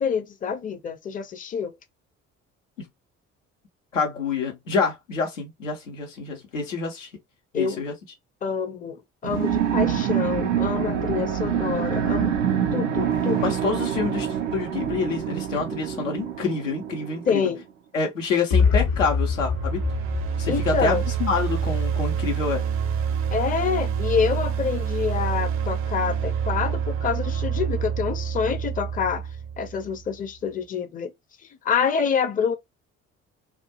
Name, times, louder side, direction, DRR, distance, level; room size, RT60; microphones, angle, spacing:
voice 1, 0.0-1.8 7.5-7.8 8.4-12.4 12.7-13.5 17.3-17.6 20.5-21.0 23.3-29.3 29.6-31.1 31.6-32.5, left 6 dB, 20° left, 0.5 m, -27 dB
voice 2, 3.9-7.1 7.5-7.9 12.6-12.9 13.4-17.5 17.9-19.8 20.4-22.6, left 5 dB, 90° left, 0.7 m, -27 dB
sound 1, 9.2-17.4, right 9 dB, 90° right, 0.5 m, -26 dB
sound 2, 18.5-22.4, left 5 dB, 50° left, 0.8 m, -25 dB
sound 3, 19.1-30.1, right 7 dB, 35° right, 0.5 m, -27 dB
2.2 x 2.0 x 2.7 m
figure-of-eight pair, 50°, 37 cm